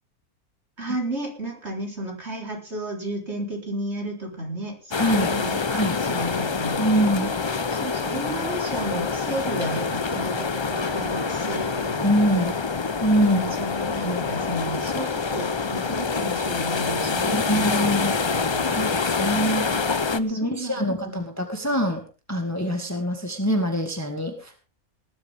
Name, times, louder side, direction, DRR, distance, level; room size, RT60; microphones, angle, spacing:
voice 1, 0.8-6.8 7.2-12.5 13.2-17.7 18.2-19.3 19.6-19.9 20.3-21.2, right 1 dB, 45° right, 1 dB, 4.3 m, -33 dB
sound 1, 4.9-20.2, left 4 dB, 40° left, 0.4 m, -26 dB
voice 2, 5.0-5.3 5.7-6.0 6.8-7.3 12.0-12.5 13.0-13.4 17.3-18.1 18.7-19.7 20.1-22.0 22.3-24.5, equal, 10° left, 4 dB, 1.8 m, -24 dB
19.5 x 12.0 x 3.6 m, 0.34 s
omnidirectional pair, 1.5 m